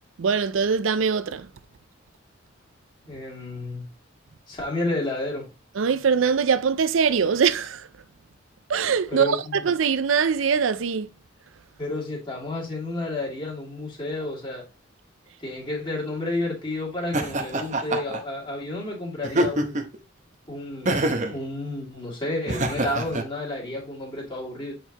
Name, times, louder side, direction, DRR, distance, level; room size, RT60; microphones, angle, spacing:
voice 1, 0.2-1.5 5.7-7.9 8.7-11.1, right 6 dB, 75° right, 0.5 m, -22 dB
voice 2, 3.1-3.9 4.5-5.5 9.1-9.6 11.8-14.6 15.4-19.8 20.5-24.7, left 2 dB, 25° left, 2.3 m, -31 dB
Laughter, 17.1-18.2 19.2-20.0 20.9-21.4 22.5-23.2, right 1 dB, 40° right, 0.8 m, -25 dB
8.0 x 4.6 x 2.9 m
head